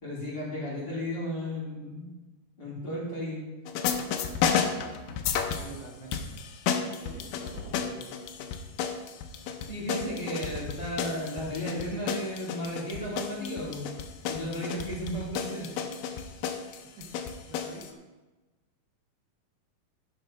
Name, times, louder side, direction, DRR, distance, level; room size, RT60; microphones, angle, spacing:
voice 1, 0.0-2.1 2.6-3.4 9.7-13.9 14.3-15.7, equal, 30° left, -6 dB, 3.3 m, -34 dB
sound 1, 3.7-5.8 6.1-17.9, left 7 dB, 75° left, 2.3 m, -32 dB
voice 2, 5.5-6.4 7.0-8.2 17.0-17.1 17.5-17.8, right 3 dB, 60° right, -3 dB, 1.2 m, -46 dB
11.0 x 6.5 x 5.6 m, 1.2 s
omnidirectional pair, 4.4 m